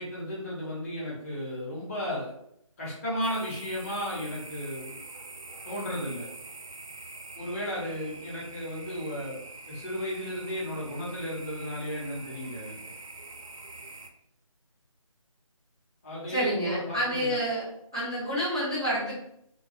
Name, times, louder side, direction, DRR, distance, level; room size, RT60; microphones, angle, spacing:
voice 1, 0.0-2.3 2.8-5.0 5.6-6.3 7.4-9.4 9.7-12.8 16.0-17.4, equal, 25° left, -6 dB, 0.8 m, -34 dB
sound 1, 3.2-14.1, right 2 dB, 75° right, 0.4 m, -45 dB
voice 2, 16.3-17.7 17.9-19.2, equal, 10° right, -12 dB, 0.3 m, -28 dB
2.2 x 2.1 x 2.6 m, 0.73 s
figure-of-eight pair, 160°, 18 cm